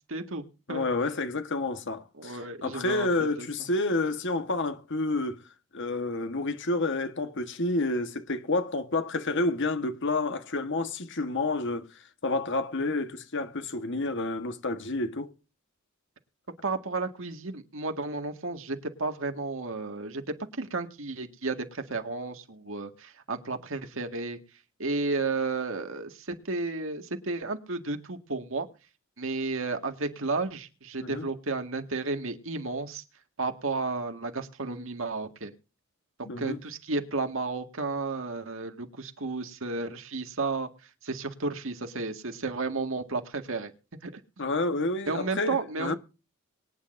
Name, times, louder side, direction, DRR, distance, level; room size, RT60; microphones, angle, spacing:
voice 1, 0.1-0.9 2.2-3.1 3.4-3.5 16.6-20.2 20.6-24.4 24.8-28.7 29.2-33.0 33.4-35.5 36.4-40.7 41.0-43.7 44.0-44.1 45.1-46.0, right 3 dB, 65° right, 1.9 m, -32 dB
voice 2, 0.7-5.4 5.7-11.9 12.2-15.3 31.0-31.3 36.2-36.6 44.4-45.9, left 2 dB, 60° left, 1.4 m, -29 dB
23.5 x 9.9 x 2.6 m
head